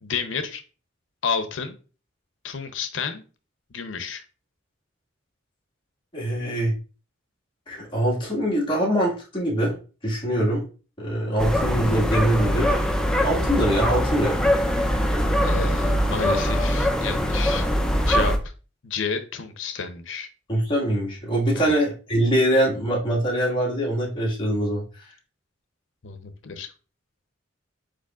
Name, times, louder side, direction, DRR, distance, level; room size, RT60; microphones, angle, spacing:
voice 1, 0.0-0.6 1.2-1.7 2.4-3.2 3.7-4.2 15.4-17.7 18.1-18.4 18.8-20.3 21.6-21.7 26.0-26.7, left 5 dB, 75° left, 9 dB, 0.7 m, -30 dB
voice 2, 6.1-6.7 7.7-9.8 10.0-10.6 11.0-12.8 13.2-14.4 20.5-25.1, right 1 dB, 25° left, -5 dB, 1.7 m, -23 dB
sound 1, 11.4-18.4, equal, 5° left, 0.4 m, -22 dB
5.0 x 4.3 x 2.4 m, 0.35 s
head